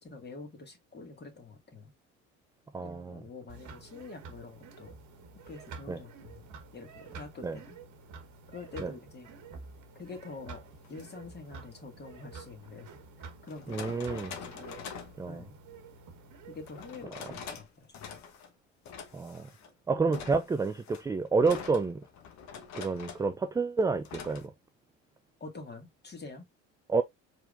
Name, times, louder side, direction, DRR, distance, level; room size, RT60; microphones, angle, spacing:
voice 1, 0.0-1.9 2.8-5.0 5.5-7.8 8.5-9.3 9.9-12.9 13.2-14.8 15.3-15.6 16.5-18.2 25.4-26.5, left 3 dB, 25° left, 2.1 m, -46 dB
voice 2, 2.7-3.2 5.9-6.0 7.4-7.6 8.8-8.9 13.7-14.3 15.2-15.4 19.1-19.5 19.9-22.0 22.7-24.5 26.9-27.0, right 4 dB, 10° right, 0.3 m, -29 dB
sound 1, 3.5-17.0, right 4 dB, 50° right, 1.3 m, -49 dB
sound 2, 10.8-11.0 12.6-12.7 13.5-15.2 16.7-17.7 17.9-18.5 18.8-19.7 20.1-23.3 24.0-24.5, left 6 dB, 50° left, 1.2 m, -44 dB
4.6 x 3.7 x 2.5 m
hypercardioid pair, 65°, 37 cm